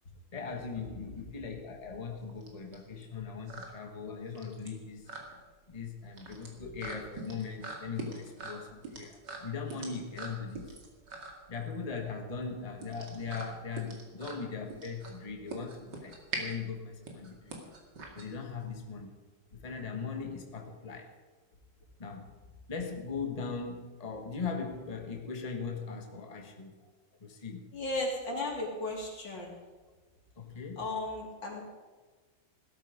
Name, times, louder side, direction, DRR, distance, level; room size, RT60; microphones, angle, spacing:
voice 1, 0.3-5.1 5.7-10.8 11.5-17.6 18.1-19.1 19.5-21.1 22.0-22.3 22.7-26.8 27.2-27.7 30.4-30.8, left 5 dB, 20° left, 3 dB, 1.5 m, -39 dB
sound 1, 1.0-18.8, right 3 dB, 70° right, 3.0 m, -44 dB
voice 2, 27.7-29.6 30.8-31.7, left 2 dB, 85° left, -1 dB, 4.0 m, -35 dB
16.5 x 13.0 x 5.1 m, 1.3 s
omnidirectional pair, 2.0 m